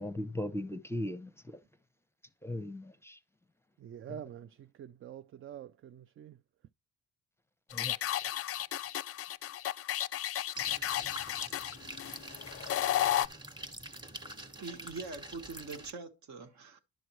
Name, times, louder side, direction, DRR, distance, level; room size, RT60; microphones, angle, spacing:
voice 1, 0.0-1.6 2.4-3.2 7.7-7.9, left 1 dB, 10° left, 0.7 m, -38 dB
voice 2, 3.8-6.4, right 9 dB, 45° right, 0.4 m, -46 dB
Talk Fauxer, 7.7-13.3, left 12 dB, 50° left, 0.4 m, -33 dB
Rain Gutter Drain Rear, 10.6-15.9, right 1 dB, 15° right, 1.2 m, -46 dB
voice 3, 14.6-16.8, right 4 dB, 65° right, 1.4 m, -43 dB
10.5 x 6.2 x 3.0 m
cardioid pair, 90°, 30 cm